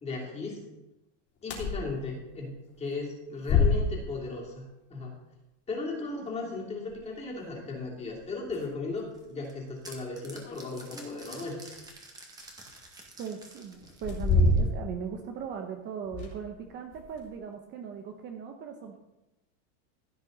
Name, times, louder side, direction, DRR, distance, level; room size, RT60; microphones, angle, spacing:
voice 1, 0.0-0.6 1.4-5.1 5.7-11.7, left 3 dB, 15° left, -2 dB, 3.0 m, -36 dB
sound 1, 1.4-1.8 2.2-2.3 3.4-4.2 6.9-7.0 8.1-8.2 8.5-8.7 9.2-9.3 10.4-11.8 12.9-13.0 13.8-15.0 15.4-15.5 16.0-16.6 16.9-17.3, left 3 dB, 40° left, 3.4 m, -27 dB
sound 2, 9.1-14.7, right 2 dB, 10° right, 1.9 m, -49 dB
voice 2, 13.2-19.0, right 7 dB, 30° right, 4 dB, 1.0 m, -38 dB
16.0 x 8.9 x 4.0 m, 0.98 s
supercardioid pair, 165°, 38 cm